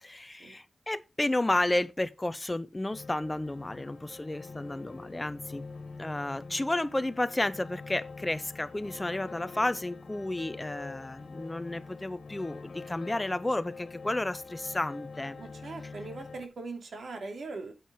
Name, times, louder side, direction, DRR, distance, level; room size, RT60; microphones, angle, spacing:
voice 1, 0.0-5.7 6.0-15.4, left 1 dB, 15° left, 0.6 m, -32 dB
sound 1, 2.9-16.5, left 4 dB, 60° left, 1.7 m, -45 dB
voice 2, 15.4-17.7, right 3 dB, 70° right, 2.7 m, -40 dB
9.4 x 8.5 x 3.6 m
wide cardioid pair, 170°, 0 cm